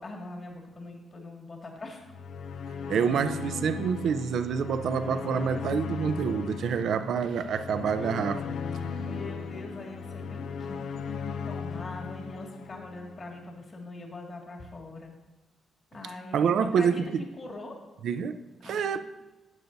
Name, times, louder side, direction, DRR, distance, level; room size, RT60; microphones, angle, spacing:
voice 1, 0.0-2.1 9.0-10.9 11.5-15.1 15.9-17.0 17.4-17.8 18.6-19.0, left 2 dB, 35° left, 2.0 m, -42 dB
sound 1, 2.0-13.4, left 5 dB, 80° left, 0.5 m, -37 dB
voice 2, 2.9-8.4 16.3-17.0 18.0-19.0, right 7 dB, 70° right, 0.5 m, -27 dB
13.5 x 9.1 x 2.7 m
cardioid pair, 110°, 0 cm